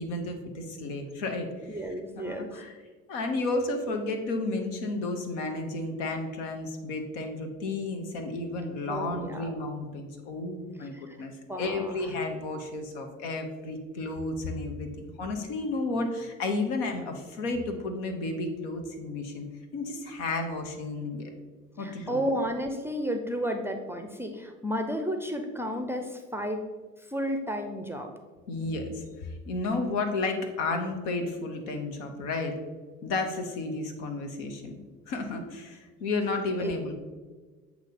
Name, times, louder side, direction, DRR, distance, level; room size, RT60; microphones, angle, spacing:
voice 1, 0.0-1.8 2.1-2.8 3.1-11.3 11.6-19.5 19.7-21.3 21.8-22.2 28.5-32.5 33.0-34.8 35.1-36.9, left 2 dB, 70° left, 5 dB, 1.0 m, -32 dB
voice 2, 1.7-2.5 8.9-9.5 10.9-11.2 11.5-12.0 21.8-26.6 27.1-28.1 36.6-36.9, equal, 5° right, 4 dB, 0.5 m, -32 dB
7.9 x 2.9 x 4.2 m, 1.4 s
hypercardioid pair, 65°, 38 cm